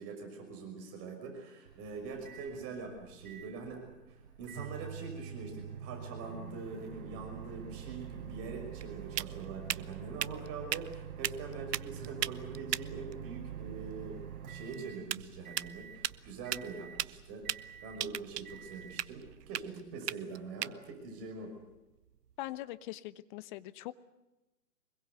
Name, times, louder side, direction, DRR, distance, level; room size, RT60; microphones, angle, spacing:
voice 1, 0.0-3.8 4.1-14.2 14.5-21.5, right 4 dB, 30° right, 3 dB, 5.8 m, -44 dB
Microwave oven, 1.6-19.6, right 9 dB, 60° right, 4.5 m, -46 dB
sound 1, 7.9-22.6, right 10 dB, 80° right, 0.9 m, -41 dB
voice 2, 22.4-23.9, left 16 dB, 30° left, 15 dB, 1.0 m, -42 dB
25.0 x 22.0 x 8.1 m, 1.0 s
hypercardioid pair, 140°, 48 cm